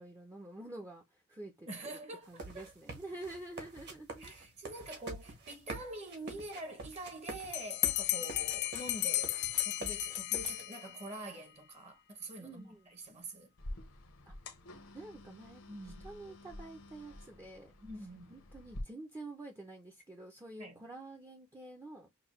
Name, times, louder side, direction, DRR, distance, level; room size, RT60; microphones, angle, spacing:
voice 1, 0.0-2.0 2.3-4.3 4.8-4.9 8.1-8.3 12.4-12.9 14.3-14.4 14.9-17.7 18.3-22.1, right 2 dB, 15° right, 0.6 m, -48 dB
voice 2, 1.7-2.7 4.2-13.5 15.7-16.1 17.8-18.4 20.6-20.8, right 2 dB, 30° right, 0.9 m, -46 dB
sound 1, 2.2-10.6, right 2 dB, 50° right, 1.5 m, -46 dB
Bell, 7.5-11.2, left 16 dB, 50° left, 0.3 m, -34 dB
sound 2, 13.6-18.8, left 1 dB, 85° left, 1.0 m, -49 dB
5.9 x 2.2 x 3.1 m
head